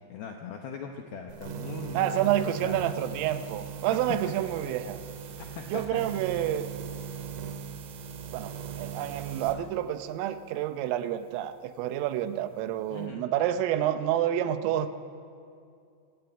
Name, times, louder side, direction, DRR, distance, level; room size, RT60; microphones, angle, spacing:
voice 1, 0.1-2.3 2.6-2.8 5.5-6.0 12.9-13.2, left 6 dB, 75° left, 3 dB, 2.2 m, -40 dB
sound 1, 1.3-9.6, right 8 dB, 55° right, 2.7 m, -39 dB
voice 2, 1.9-5.0 5.7-6.7 8.3-14.9, right 11 dB, 85° right, 10 dB, 3.5 m, -29 dB
24.5 x 16.0 x 8.9 m, 2.5 s
omnidirectional pair, 5.8 m